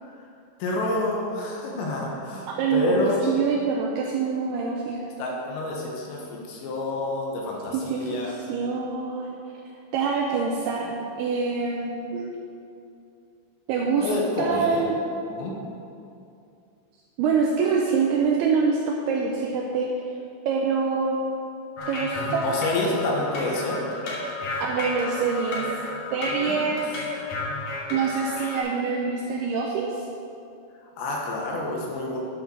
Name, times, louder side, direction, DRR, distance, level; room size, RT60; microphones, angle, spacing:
voice 1, 0.6-3.2 5.2-8.4 14.0-14.9 15.3-15.5 22.2-23.8 26.3-26.6 31.0-32.2, left 2 dB, 80° left, -2 dB, 3.4 m, -28 dB
voice 2, 2.6-5.0 7.7-9.3 9.9-12.3 13.7-14.1 14.4-15.0 17.2-19.9 20.5-21.2 21.9-22.5 24.6-25.7 26.1-26.9 27.9-30.1, right 5 dB, 85° right, -1 dB, 2.3 m, -25 dB
sound 1, 21.8-28.6, left 2 dB, 60° left, 1.8 m, -32 dB
10.0 x 5.1 x 5.9 m, 2.5 s
omnidirectional pair, 5.2 m